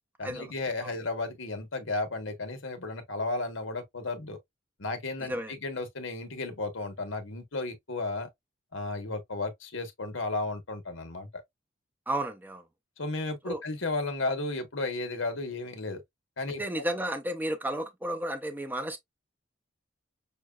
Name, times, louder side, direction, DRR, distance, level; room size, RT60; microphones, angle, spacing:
voice 1, 0.2-4.4 4.8-8.3 8.7-11.4 13.0-16.0 16.4-16.8, left 2 dB, 70° left, 1.3 m, -34 dB
voice 2, 12.1-12.6 13.4-13.6 16.6-19.0, right 1 dB, 10° right, 0.5 m, -32 dB
6.4 x 2.3 x 2.4 m
head